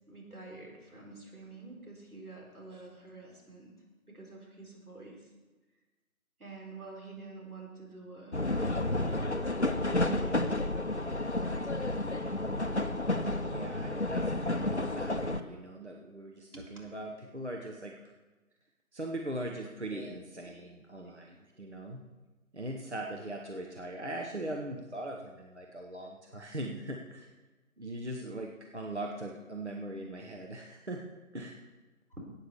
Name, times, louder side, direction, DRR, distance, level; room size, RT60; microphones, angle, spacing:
voice 1, 0.1-3.7 4.1-5.3 6.4-8.5 9.6-10.8 16.5-16.6 19.9-20.1 20.4-20.7 21.0-21.2 21.6-21.7, right 2 dB, 85° right, -2 dB, 4.4 m, -47 dB
sound 1, 8.3-15.4, left 2 dB, 50° left, 0.6 m, -31 dB
voice 2, 13.4-17.9 18.9-22.0 22.5-27.3 27.8-31.0 31.3-31.6, right 1 dB, 50° right, 1 dB, 1.1 m, -40 dB
9.7 x 8.9 x 6.9 m, 1.2 s
figure-of-eight pair, 175°, 43 cm